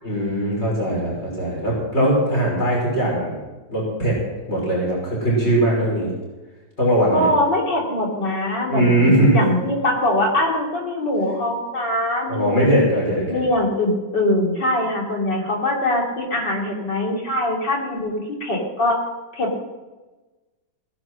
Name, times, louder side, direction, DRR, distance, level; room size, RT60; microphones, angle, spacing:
voice 1, 0.0-3.4 3.7-4.2 4.5-6.1 6.8-7.3 8.7-9.4 12.3-13.4, right 1 dB, 35° left, -4 dB, 6.1 m, -20 dB
voice 2, 7.1-12.9 13.3-19.0 19.3-19.6, left 1 dB, 65° left, -1 dB, 3.8 m, -22 dB
18.0 x 10.5 x 6.4 m, 1.2 s
omnidirectional pair, 2.1 m